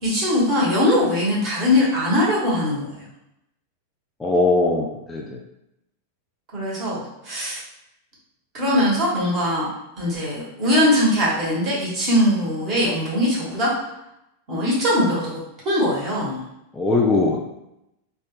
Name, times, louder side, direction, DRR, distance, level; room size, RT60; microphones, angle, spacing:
voice 1, 0.0-2.9 6.5-7.6 8.5-9.7 10.0-13.7 14.5-16.4, left 1 dB, 35° right, -6 dB, 1.5 m, -21 dB
voice 2, 4.2-5.4 16.7-17.4, left 3 dB, 10° left, -3 dB, 0.4 m, -20 dB
3.2 x 2.4 x 3.1 m, 0.85 s
figure-of-eight pair, 90°, 0 cm